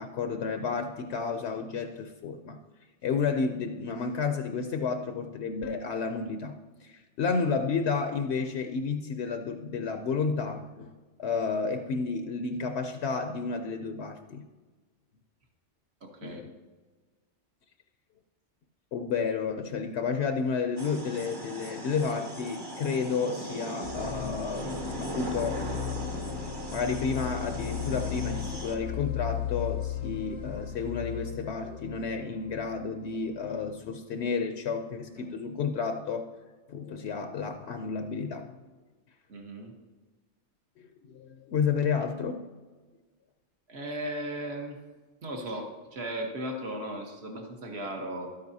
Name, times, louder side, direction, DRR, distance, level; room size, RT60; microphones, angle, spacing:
voice 1, 0.0-2.6 3.0-10.9 11.2-14.4 16.2-16.5 18.9-25.6 26.7-36.3 36.7-38.5 40.8-42.5, left 5 dB, 70° left, 6 dB, 0.8 m, -31 dB
voice 2, 16.0-16.4 39.3-39.7 43.7-44.8 45.2-48.3, right 1 dB, 65° right, 2 dB, 1.5 m, -36 dB
sound 1, 20.8-28.8, right 1 dB, 25° right, 0.8 m, -38 dB
sound 2, 23.8-33.6, left 11 dB, 35° left, 0.6 m, -36 dB
12.5 x 9.3 x 2.7 m, 1.4 s
omnidirectional pair, 1.2 m